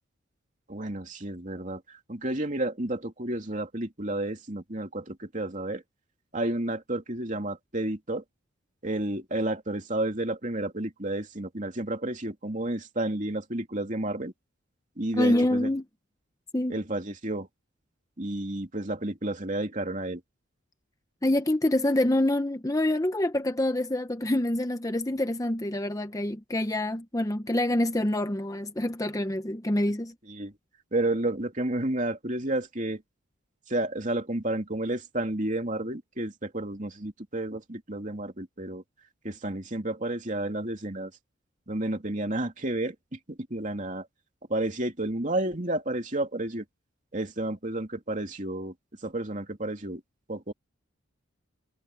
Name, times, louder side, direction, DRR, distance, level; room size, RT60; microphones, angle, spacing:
voice 1, 0.7-5.8 6.3-8.2 8.8-14.3 15.0-15.7 16.7-17.5 18.2-20.2 30.3-30.5 30.9-33.0 33.7-38.8 39.2-41.1 41.7-44.1 44.5-46.6 47.1-48.7 49.0-50.0 50.3-50.5, right 1 dB, 35° right, 3.0 m, -31 dB
voice 2, 15.2-15.8 16.5-16.7 21.2-30.1, left 1 dB, 15° left, 0.7 m, -26 dB
head